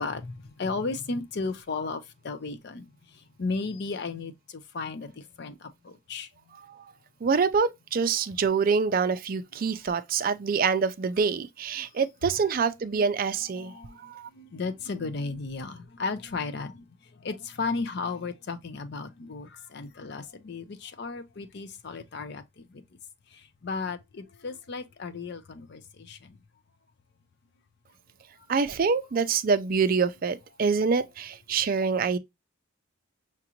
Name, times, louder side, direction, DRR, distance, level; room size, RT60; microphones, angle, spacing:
voice 1, 0.0-2.8 3.4-6.3 12.9-13.1 13.6-14.0 14.3-16.9 17.2-22.8 23.6-26.4, left 4 dB, 55° left, 0.5 m, -34 dB
voice 2, 7.2-14.3 28.5-32.2, right 5 dB, 45° right, 0.4 m, -26 dB
5.8 x 2.5 x 2.8 m
head